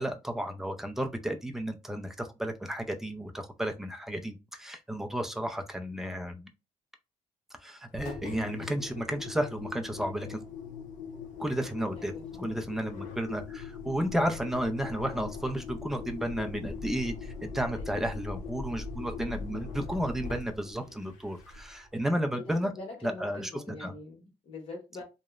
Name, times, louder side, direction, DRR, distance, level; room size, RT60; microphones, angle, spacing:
voice 1, 0.0-6.5 7.6-10.4 11.4-22.7 23.0-23.9, right 1 dB, 5° right, 0.3 m, -33 dB
Engine, 7.9-21.9, left 5 dB, 85° left, 0.6 m, -41 dB
voice 2, 12.0-12.6 17.7-17.9 22.5-25.0, left 2 dB, 45° left, 1.2 m, -44 dB
2.8 x 2.0 x 2.2 m
cardioid pair, 165°, 13 cm